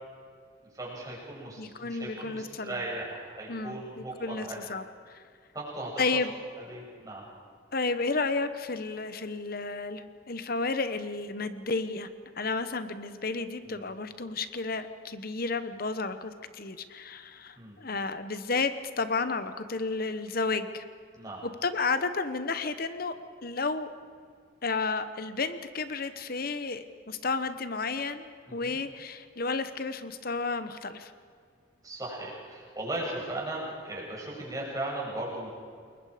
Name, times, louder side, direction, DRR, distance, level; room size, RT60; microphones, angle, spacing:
voice 1, 0.7-4.6 5.5-6.2 6.7-7.2 13.6-13.8 17.6-17.8 21.1-21.4 28.5-28.8 31.8-35.5, right 1 dB, 20° right, -5 dB, 7.3 m, -37 dB
voice 2, 1.6-2.8 3.5-5.2 6.0-6.3 7.7-12.1 12.4-20.8 21.6-23.1 23.4-23.9 24.6-31.1, left 3 dB, 45° left, 11 dB, 1.0 m, -32 dB
28.5 x 22.0 x 5.1 m, 2.1 s
head